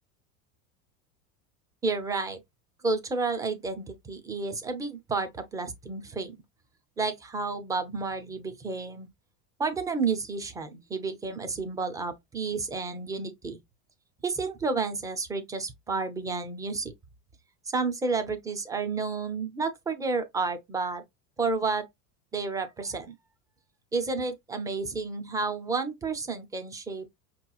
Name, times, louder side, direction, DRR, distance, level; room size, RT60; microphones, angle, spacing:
voice 1, 1.8-2.4 2.8-6.3 7.0-9.1 9.6-13.6 14.2-16.9 17.7-21.0 21.4-21.9 22.3-23.1 23.9-27.1, right 4 dB, 10° right, 0.3 m, -31 dB
5.3 x 3.0 x 2.3 m
supercardioid pair, 140°, 40 cm